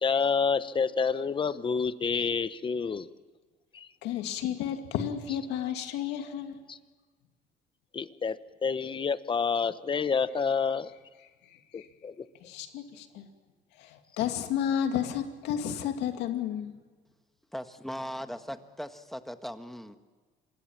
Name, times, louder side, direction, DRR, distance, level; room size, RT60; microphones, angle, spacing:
voice 1, 0.0-3.1 3.7-3.9 6.7-6.8 7.9-10.9 11.7-12.1, left 5 dB, 30° left, 14 dB, 1.0 m, -28 dB
voice 2, 4.0-6.6 11.7-11.9 12.4-13.3 13.8-16.7, left 9 dB, 90° left, 6 dB, 2.4 m, -32 dB
voice 3, 17.5-20.0, equal, ahead, 8 dB, 1.5 m, -39 dB
26.0 x 20.5 x 7.4 m, 1.4 s
cardioid pair, 110°, 17 cm